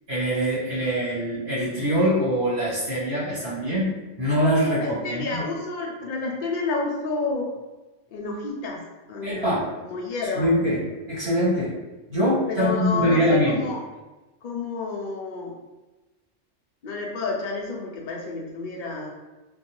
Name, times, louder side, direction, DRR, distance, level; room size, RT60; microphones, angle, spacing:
voice 1, 0.1-3.9 4.2-5.3 9.2-9.6 10.4-10.8 11.1-11.7 12.1-13.6, equal, 60° right, -10 dB, 1.6 m, -23 dB
voice 2, 4.8-7.5 8.1-8.8 9.1-10.5 12.5-13.8 14.4-15.5 16.8-19.1, left 3 dB, 65° left, -1 dB, 0.5 m, -30 dB
2.6 x 2.2 x 2.9 m, 1.1 s
omnidirectional pair, 1.3 m